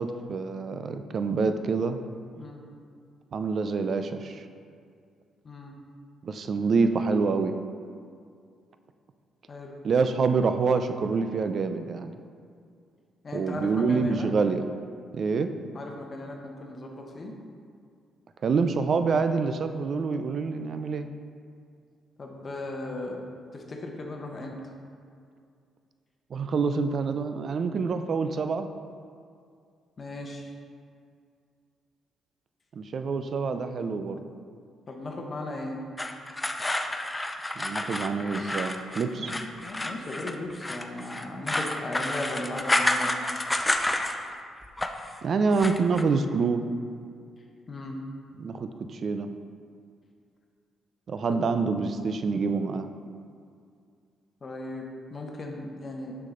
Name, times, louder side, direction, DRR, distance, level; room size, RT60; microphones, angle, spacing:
voice 1, 0.0-2.0 3.3-4.4 6.2-7.5 9.8-12.1 13.3-14.7 15.1-15.5 18.4-21.1 26.3-28.7 32.7-34.2 37.6-39.3 45.2-46.6 48.4-49.3 51.1-52.9, right 4 dB, 50° right, 9 dB, 0.4 m, -26 dB
voice 2, 5.4-5.8 9.5-9.7 13.2-14.3 15.7-17.3 22.2-23.2 23.5-24.6 30.0-30.5 34.9-35.8 38.7-38.8 39.2-43.1 47.7-48.0 51.3-51.4 54.4-56.2, left 2 dB, 35° left, 1 dB, 0.9 m, -37 dB
sound 1, 36.0-44.4 44.6-45.1 45.5-46.0, left 1 dB, 15° left, 0.4 m, -29 dB
6.3 x 5.9 x 3.8 m, 2.3 s
cardioid pair, 90°, 0 cm